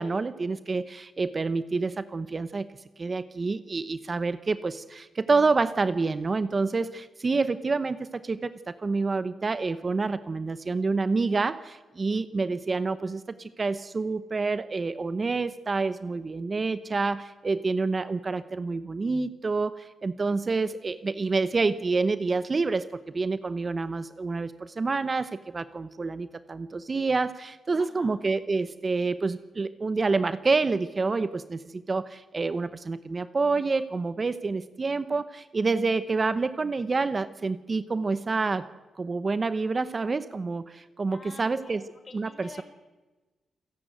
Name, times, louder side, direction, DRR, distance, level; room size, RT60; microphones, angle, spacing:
voice 1, 0.0-2.7 3.0-38.7 39.0-41.8 42.1-42.6, right 3 dB, 30° right, 13 dB, 0.8 m, -28 dB
voice 2, 27.8-28.1 41.1-42.6, left 3 dB, 40° left, 8 dB, 3.8 m, -48 dB
27.5 x 10.5 x 9.2 m, 1.2 s
cardioid pair, 115°, 0 cm